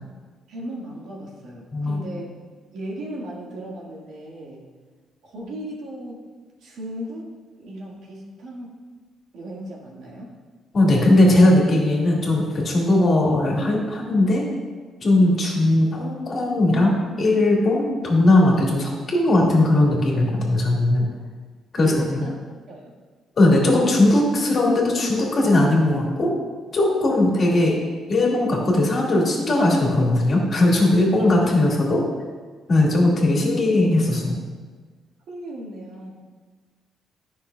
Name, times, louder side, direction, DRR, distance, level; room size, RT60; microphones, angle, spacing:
voice 1, 0.5-2.4 2.7-4.6 5.2-6.2 6.6-8.8 9.3-10.3 15.4-15.5 21.8-22.9 27.1-27.3 31.7-31.8 35.3-36.1, right 1 dB, 75° right, -3 dB, 1.7 m, -36 dB
voice 2, 1.7-2.0 10.7-14.4 15.0-21.1 21.7-22.2 23.4-26.3 26.7-27.7 28.1-32.0 32.7-34.4, left 1 dB, 45° left, -2 dB, 1.8 m, -19 dB
10.0 x 5.7 x 2.2 m, 1.4 s
cardioid pair, 90°, 0 cm